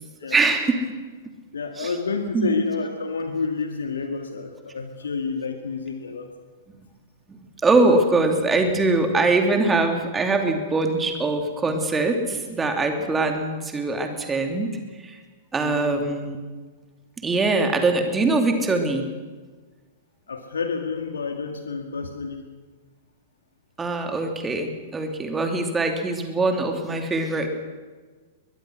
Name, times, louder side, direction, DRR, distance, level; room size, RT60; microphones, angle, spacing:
voice 1, 0.3-0.8 1.8-1.9 2.3-2.6 7.3-14.7 15.0-15.2 15.5-16.4 17.2-19.1 23.8-27.5, right 3 dB, 15° right, 4 dB, 2.9 m, -22 dB
voice 2, 1.5-6.3 15.6-16.0 20.3-22.4, left 4 dB, 70° left, 5 dB, 1.9 m, -29 dB
22.5 x 21.5 x 6.3 m, 1.4 s
figure-of-eight pair, 100°, 0 cm